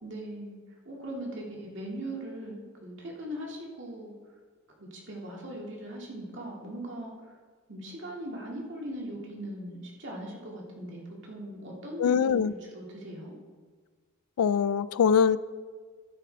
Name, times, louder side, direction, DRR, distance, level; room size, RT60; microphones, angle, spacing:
voice 1, 0.0-0.6 0.9-4.1 4.8-7.4 7.7-13.4, right 1 dB, 55° right, -2 dB, 2.2 m, -40 dB
voice 2, 12.0-12.5 14.4-15.4, left 7 dB, 90° left, 17 dB, 0.3 m, -23 dB
14.0 x 8.4 x 3.4 m, 1.5 s
head